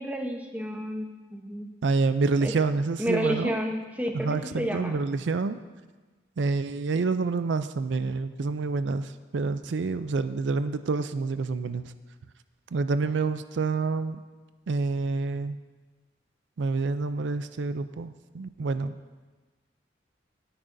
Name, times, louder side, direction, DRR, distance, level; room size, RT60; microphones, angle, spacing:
voice 1, 0.0-1.7 2.4-2.5 3.0-5.0, equal, 10° right, 3 dB, 0.8 m, -30 dB
voice 2, 1.8-3.6 4.1-5.6 6.4-11.9 12.7-14.2 14.7-15.6 16.6-19.0, right 4 dB, 75° right, 12 dB, 0.4 m, -28 dB
17.5 x 10.0 x 2.6 m, 1.3 s
head